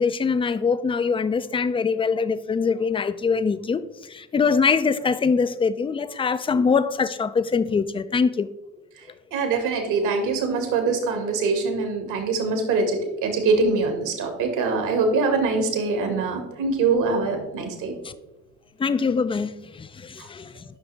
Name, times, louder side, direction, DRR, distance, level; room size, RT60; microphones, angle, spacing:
voice 1, 0.0-8.5 18.0-18.1 18.8-20.6, left 5 dB, 15° left, 0.5 m, -23 dB
voice 2, 9.3-18.0 20.2-20.3, right 4 dB, 60° right, 2.1 m, -23 dB
11.5 x 6.0 x 3.4 m
hypercardioid pair, 60°, 34 cm